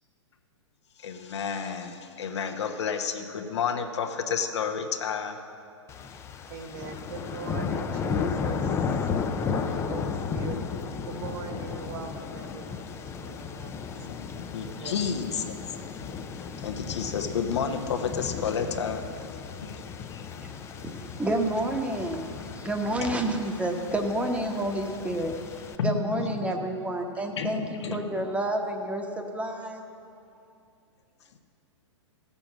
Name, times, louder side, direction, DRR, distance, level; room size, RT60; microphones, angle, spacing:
voice 1, 1.0-5.4 14.0-15.4 16.6-20.8 23.0-23.2 25.8-26.6 27.4-28.2, left 6 dB, 65° left, 4 dB, 1.1 m, -31 dB
sound 1, 5.9-25.8, left 6 dB, 15° left, 0.5 m, -34 dB
voice 2, 6.5-8.8 9.4-10.6 11.1-13.7 14.7-15.4, right 5 dB, 45° right, 5 dB, 1.6 m, -41 dB
voice 3, 20.8-22.3 22.5-25.3 25.8-29.8, right 1 dB, 10° right, 3 dB, 1.1 m, -29 dB
15.0 x 6.9 x 7.5 m, 2.6 s
hypercardioid pair, 115°, 16 cm